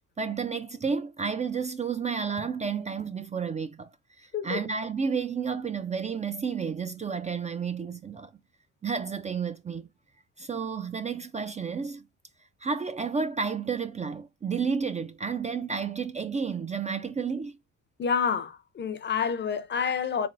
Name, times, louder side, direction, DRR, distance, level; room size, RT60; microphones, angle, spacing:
voice 1, 0.2-3.9 4.2-8.3 8.8-9.8 10.4-12.0 12.6-17.5, right 5 dB, 25° right, 0.3 m, -31 dB
voice 2, 18.0-20.3, left 6 dB, 35° left, 0.5 m, -28 dB
3.6 x 3.4 x 2.5 m
cardioid pair, 90°, 30 cm